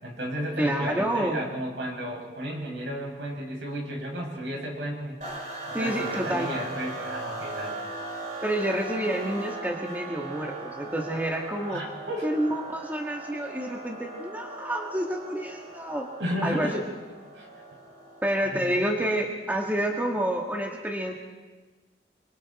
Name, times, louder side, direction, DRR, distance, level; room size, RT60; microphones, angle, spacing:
voice 1, 0.0-5.2 5.7-7.8 11.7-12.3 16.2-16.8 17.3-17.5 18.4-18.7, equal, 80° right, -1 dB, 6.4 m, -33 dB
voice 2, 0.6-1.4 5.7-6.5 8.4-11.8 12.2-16.1 16.4-16.7 18.2-21.1, right 1 dB, 10° right, 1 dB, 1.8 m, -28 dB
sound 1, 5.2-18.6, right 2 dB, 45° right, 6.9 m, -38 dB
26.5 x 23.5 x 4.3 m, 1.3 s
head